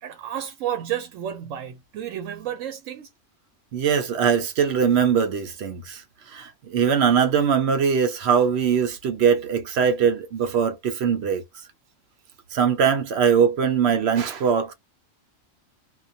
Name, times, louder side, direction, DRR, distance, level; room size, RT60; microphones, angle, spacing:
voice 1, 0.0-3.1, right 10 dB, 85° right, 1.0 m, -31 dB
voice 2, 3.7-6.0 6.3-11.4 12.5-14.7, right 7 dB, 65° right, 0.8 m, -21 dB
2.2 x 2.2 x 2.5 m
omnidirectional pair, 1.3 m